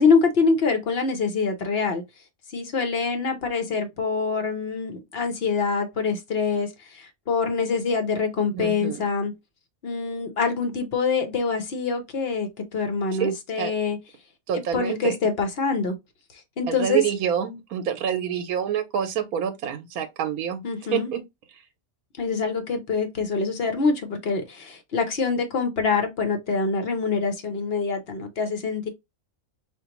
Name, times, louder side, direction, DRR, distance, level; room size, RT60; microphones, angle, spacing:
voice 1, 0.0-2.0 2.5-9.3 9.8-14.0 14.7-16.0 16.6-17.0 20.6-21.1 22.2-28.9, left 4 dB, 50° left, 0.9 m, -25 dB
voice 2, 8.5-9.1 13.2-13.7 14.5-15.2 16.7-20.7 20.9-21.2 21.5-21.6, right 8 dB, 80° right, 1.1 m, -27 dB
4.9 x 2.5 x 2.8 m
omnidirectional pair, 1.5 m